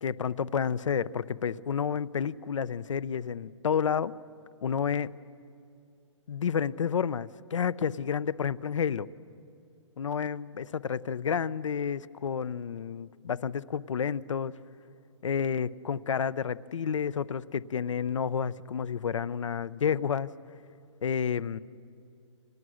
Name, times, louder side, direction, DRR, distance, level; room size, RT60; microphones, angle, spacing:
voice 1, 0.0-4.1 4.6-5.1 6.3-9.1 10.0-14.6 15.2-20.3 21.0-21.6, left 7 dB, 80° left, 18 dB, 0.7 m, -30 dB
29.5 x 26.5 x 6.4 m, 2.5 s
hypercardioid pair, 175°, 16 cm